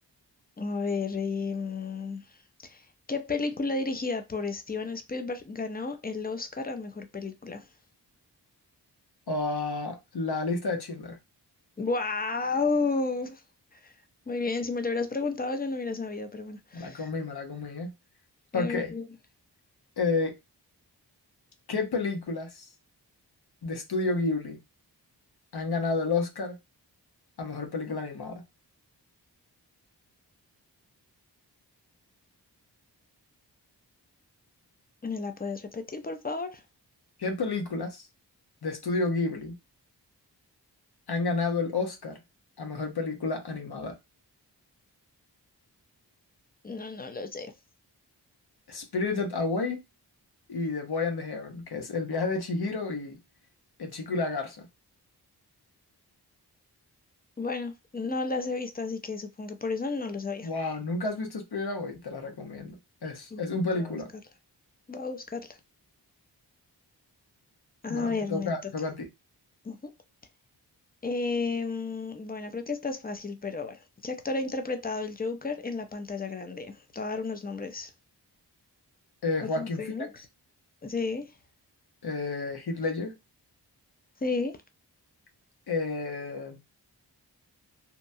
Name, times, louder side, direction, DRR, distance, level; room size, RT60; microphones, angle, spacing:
voice 1, 0.6-2.2 2.6-7.7 11.8-13.4 13.7-13.9 14.3-17.1 18.5-19.1 35.0-36.6 46.6-47.5 57.4-60.5 63.3-63.4 63.7-64.0 64.9-65.6 67.8-68.7 69.6-69.9 71.0-77.9 79.6-80.3 80.8-81.3 84.2-84.6, left 3 dB, 20° left, 0.6 m, -32 dB
voice 2, 9.3-11.2 16.7-17.9 18.5-18.9 20.0-20.4 21.7-22.7 23.6-24.6 25.5-26.6 27.4-28.4 37.2-38.1 38.6-39.5 41.1-42.2 42.6-44.0 48.7-49.8 50.5-53.2 53.8-54.7 60.4-62.8 63.0-64.1 67.9-69.1 79.2-80.1 82.0-83.1 85.7-86.6, left 3 dB, 65° left, 0.9 m, -30 dB
2.8 x 2.2 x 2.6 m
cardioid pair, 45°, 42 cm